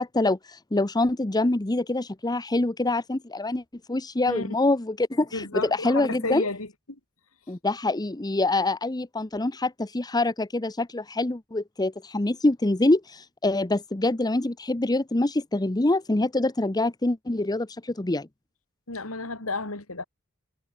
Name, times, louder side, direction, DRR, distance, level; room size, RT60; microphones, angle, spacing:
voice 1, 0.0-3.6 3.9-6.5 7.5-18.3, left 2 dB, 20° left, 0.8 m, -25 dB
voice 2, 5.3-7.0 18.9-20.0, left 3 dB, 75° left, 3.5 m, -32 dB
head